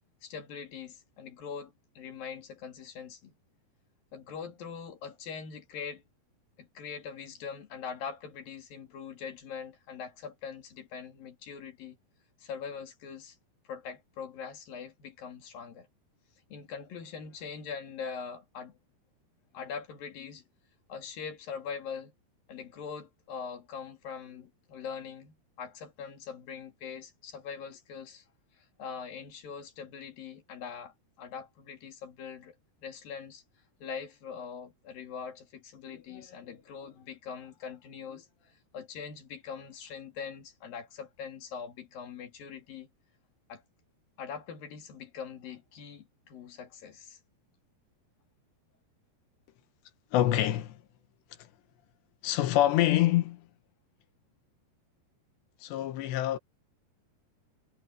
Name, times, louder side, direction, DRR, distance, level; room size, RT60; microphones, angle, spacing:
voice 1, 0.2-3.3 4.1-6.0 6.6-12.0 12.4-13.4 13.7-15.9 16.5-18.7 19.5-20.4 20.9-22.1 22.5-28.2 28.8-32.5 32.8-33.4 33.8-42.9 43.5-43.6 44.2-47.2, left 6 dB, 60° left, 4.0 m, -42 dB
voice 2, 50.1-50.8 52.2-53.5 55.6-56.4, left 13 dB, 90° left, 3.5 m, -26 dB
omnidirectional pair, 4.8 m